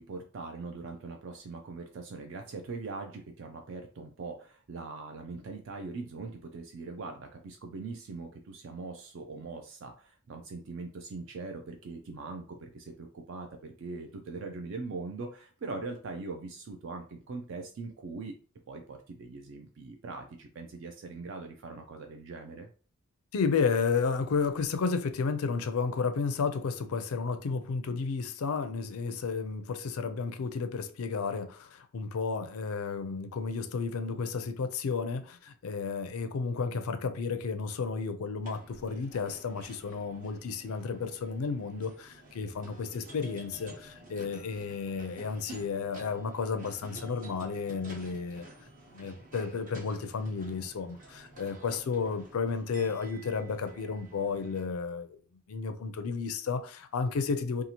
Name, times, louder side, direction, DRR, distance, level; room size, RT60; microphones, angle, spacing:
voice 1, 0.0-18.3 18.7-22.7, right 3 dB, 55° right, 0.3 m, -41 dB
voice 2, 23.3-48.5 48.9-55.2 55.5-57.6, left 5 dB, 80° left, 0.4 m, -32 dB
sound 1, 38.4-54.6, right 1 dB, 35° right, 0.8 m, -51 dB
2.8 x 2.4 x 2.8 m
head